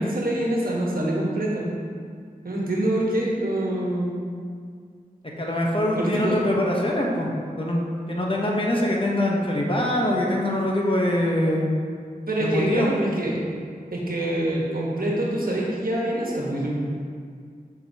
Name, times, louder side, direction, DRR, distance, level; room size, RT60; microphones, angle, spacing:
voice 1, 0.0-1.6 2.4-4.2 5.9-6.4 12.3-13.4 13.9-16.7, right 1 dB, 70° right, -4 dB, 1.3 m, -25 dB
voice 2, 5.4-11.7 12.4-12.9, left 1 dB, 35° left, -2 dB, 1.0 m, -23 dB
7.6 x 5.9 x 2.8 m, 2.1 s
wide cardioid pair, 65°, 16 cm